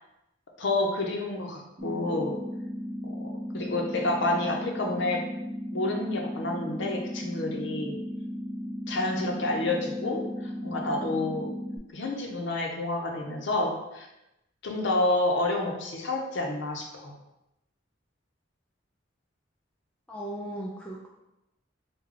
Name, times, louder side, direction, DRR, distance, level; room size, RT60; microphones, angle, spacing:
voice 1, 0.6-2.4 3.5-5.2 5.7-8.0 8.9-11.5 11.9-14.1 14.6-17.1, left 2 dB, 65° left, 1 dB, 0.6 m, -29 dB
sound 1, 1.8-11.8, equal, 30° right, 0.7 m, -36 dB
voice 2, 20.1-21.1, right 1 dB, 5° left, -4 dB, 0.3 m, -37 dB
3.2 x 2.2 x 3.6 m, 0.91 s
head